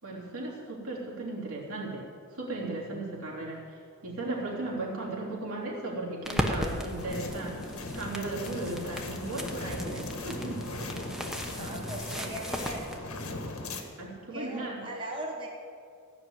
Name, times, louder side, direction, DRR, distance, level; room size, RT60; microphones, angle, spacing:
voice 1, 0.0-7.6 7.9-10.7 14.0-14.9, right 2 dB, 80° right, -4 dB, 3.4 m, -36 dB
sound 1, 6.2-13.0, equal, ahead, 1.0 m, -37 dB
sound 2, 7.0-13.8, left 1 dB, 90° left, 1.5 m, -38 dB
voice 2, 11.3-12.8 14.3-15.5, right 1 dB, 25° right, -2 dB, 1.5 m, -39 dB
15.5 x 6.1 x 8.9 m, 2.2 s
head